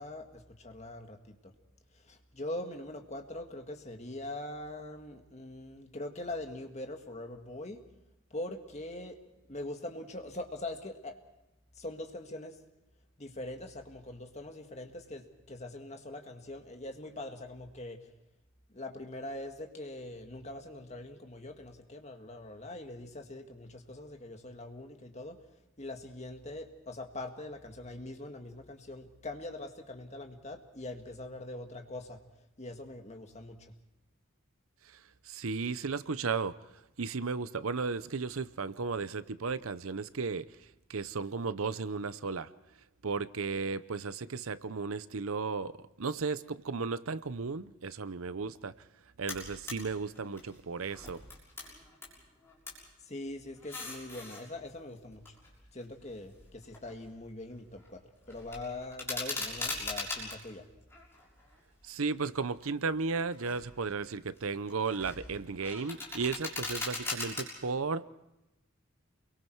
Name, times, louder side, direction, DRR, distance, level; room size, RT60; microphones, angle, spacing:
voice 1, 0.0-1.5 1.9-7.8 8.3-9.2 9.5-11.2 11.8-12.6 13.2-18.1 18.7-32.2 32.6-33.7 53.0-55.4 55.7-60.7, left 1 dB, 35° left, 4 dB, 1.9 m, -42 dB
voice 2, 34.8-36.6 37.0-42.5 43.0-48.9 49.2-51.2 61.8-68.0, right 4 dB, 90° right, 15 dB, 0.8 m, -35 dB
sound 1, 49.3-49.8 50.1-52.1 52.4-52.9 53.5-54.4 55.1-57.2 57.5-57.9 58.2-60.4 60.9-61.8 62.4-62.6 63.2-63.7 64.1-67.4, left 3 dB, 10° left, 6.6 m, -40 dB
29.0 x 23.0 x 4.6 m, 0.92 s
head